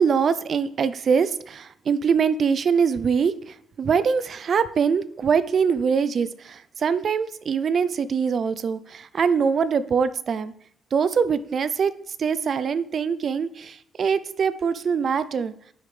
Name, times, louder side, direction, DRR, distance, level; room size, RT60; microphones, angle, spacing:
voice 1, 0.0-10.5 10.9-11.9 12.2-15.5, right 6 dB, 50° right, 15 dB, 0.4 m, -23 dB
10.5 x 5.1 x 3.3 m, 0.66 s
cardioid pair, 90°, 0 cm